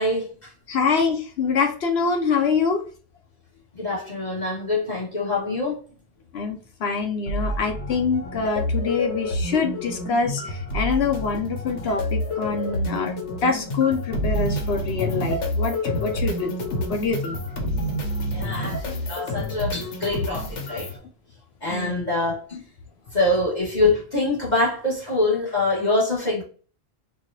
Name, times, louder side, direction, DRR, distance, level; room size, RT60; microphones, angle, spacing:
voice 1, 0.0-0.5 3.7-5.8 18.3-20.9 21.6-22.6 23.1-26.4, left 2 dB, 40° left, 1.6 m, -24 dB
voice 2, 0.7-2.8 6.3-16.5 16.9-17.4 21.7-22.0, left 5 dB, 65° left, 1.0 m, -25 dB
sound 1, 7.3-21.0, left 1 dB, 90° left, 1.2 m, -28 dB
4.5 x 2.4 x 2.6 m
omnidirectional pair, 1.2 m